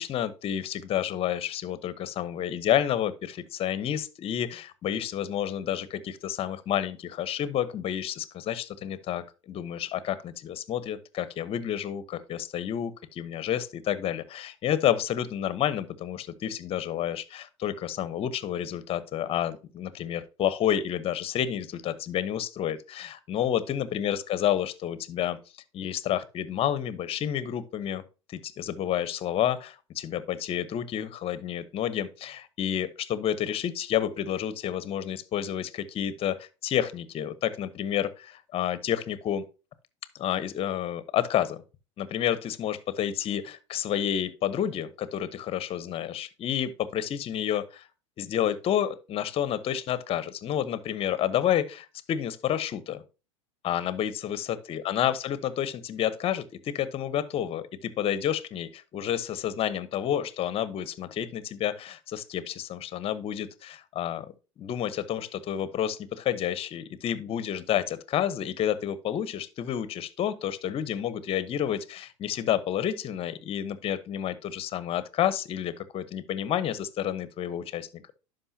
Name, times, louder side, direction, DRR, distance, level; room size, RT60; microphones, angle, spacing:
voice 1, 0.0-25.4 25.7-28.0 28.3-39.4 40.2-41.6 42.0-47.8 48.2-53.0 53.6-64.3 64.6-78.1, left 10 dB, 35° left, 0.9 m, -30 dB
11.5 x 5.3 x 2.8 m
hypercardioid pair, 100°, 16 cm